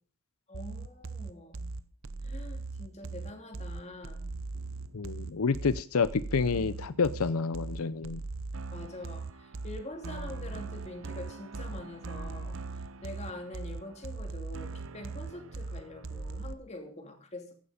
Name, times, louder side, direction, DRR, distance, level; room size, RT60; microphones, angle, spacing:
voice 1, 0.5-1.7 2.2-4.3 8.7-17.5, left 1 dB, 30° left, 4 dB, 2.9 m, -45 dB
sound 1, 0.5-16.5, right 3 dB, 65° right, 0.8 m, -40 dB
voice 2, 4.9-8.2, left 5 dB, 90° left, 15 dB, 0.6 m, -29 dB
16.0 x 11.0 x 5.1 m, 0.42 s
head